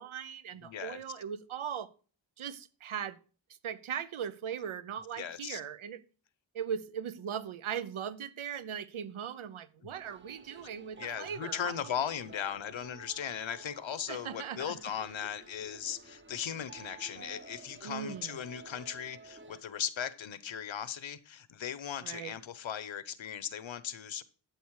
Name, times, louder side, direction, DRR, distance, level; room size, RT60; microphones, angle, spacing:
voice 1, 0.0-1.9 2.4-3.2 3.6-6.0 6.5-11.7 14.1-14.8 17.8-18.4 22.0-22.3, right 8 dB, 85° right, 0.9 m, -39 dB
voice 2, 0.6-1.0 5.2-5.6 10.6-10.7 11.0-24.2, left 9 dB, 70° left, 1.0 m, -38 dB
sound 1, 9.9-19.6, right 4 dB, 25° right, 0.7 m, -52 dB
12.5 x 8.2 x 4.8 m
wide cardioid pair, 160°, 48 cm